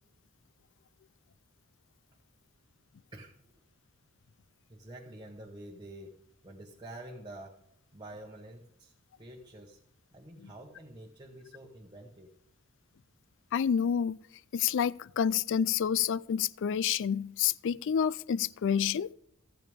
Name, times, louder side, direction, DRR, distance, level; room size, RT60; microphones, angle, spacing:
voice 1, 4.7-7.6 7.9-9.8 10.1-12.3, right 1 dB, 20° right, 1.1 m, -48 dB
voice 2, 13.5-14.2 14.5-19.1, left 8 dB, 55° left, 0.3 m, -28 dB
14.0 x 9.1 x 3.5 m
head